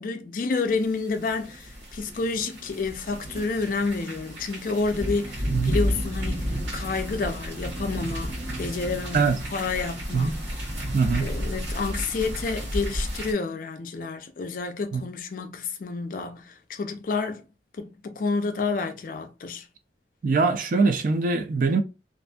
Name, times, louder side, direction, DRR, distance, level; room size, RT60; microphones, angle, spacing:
voice 1, 0.0-10.4 11.2-17.4 17.8-19.7, left 4 dB, 50° left, 0.4 m, -29 dB
sound 1, 0.8-13.3, equal, 80° right, 1.1 m, -32 dB
voice 2, 10.9-11.3 14.9-15.0 20.2-21.8, right 4 dB, 50° right, 0.3 m, -22 dB
2.5 x 2.4 x 2.2 m
head